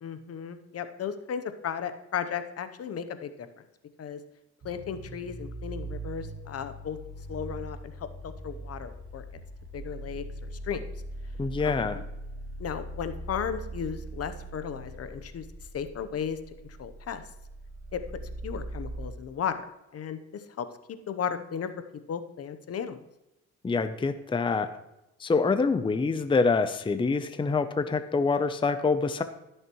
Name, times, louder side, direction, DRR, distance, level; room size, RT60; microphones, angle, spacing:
voice 1, 0.0-3.5 4.0-4.2 4.6-7.0 7.3-9.2 9.7-10.8 11.6-12.0 12.6-15.4 15.7-16.4 16.6-17.2 17.9-18.0 18.4-19.6 19.9-20.7 21.1-21.7 22.1-23.1, left 7 dB, 55° left, 10 dB, 0.8 m, -35 dB
sound 1, 4.6-19.1, right 1 dB, 50° right, 1.7 m, -41 dB
voice 2, 11.4-12.0 23.6-24.7 25.2-29.2, left 4 dB, 15° left, 10 dB, 0.6 m, -26 dB
15.5 x 6.5 x 3.0 m, 0.93 s
cardioid pair, 90°, 30 cm